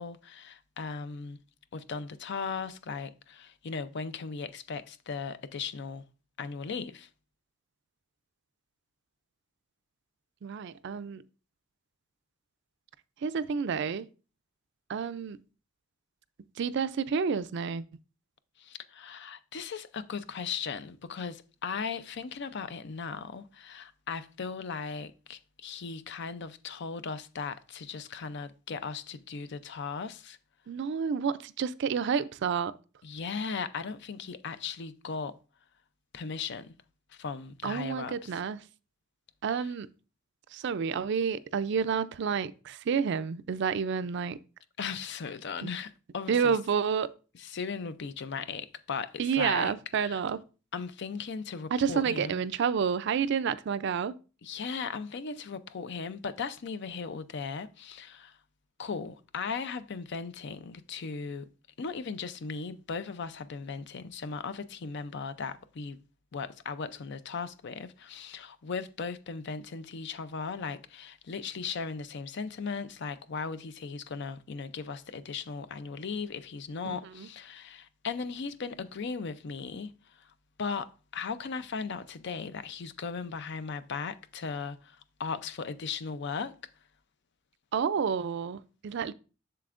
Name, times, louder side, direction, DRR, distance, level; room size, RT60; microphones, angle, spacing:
voice 1, 0.0-1.4 1.7-6.0 6.4-7.1 18.6-30.4 33.0-35.4 36.1-36.7 37.1-38.4 44.8-46.6 47.3-49.7 50.0-50.2 50.7-52.5 54.4-58.4 58.8-61.5 61.8-66.0 66.3-80.3 80.6-86.5, left 5 dB, 60° left, 0.5 m, -37 dB
voice 2, 10.4-11.2 13.2-14.1 14.9-15.4 16.6-17.8 30.7-32.7 37.6-38.7 39.4-39.9 40.5-44.4 45.6-45.7 46.3-47.1 49.2-50.4 51.7-54.1 76.8-77.3 87.7-89.1, right 6 dB, 60° right, 0.4 m, -29 dB
7.6 x 6.8 x 2.5 m
head